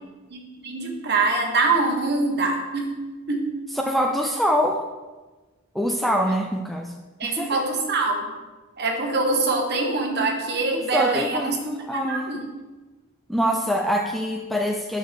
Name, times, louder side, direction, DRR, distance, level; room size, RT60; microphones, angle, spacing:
voice 1, 0.3-3.0 3.3-3.5 7.2-8.3 8.8-11.6 12.1-12.5, right 3 dB, 50° right, 2 dB, 1.2 m, -24 dB
voice 2, 3.8-4.8 5.7-6.9 7.2-7.6 10.7-12.4 13.3-15.0, equal, ahead, 2 dB, 0.4 m, -24 dB
9.1 x 6.0 x 3.4 m, 1.2 s
head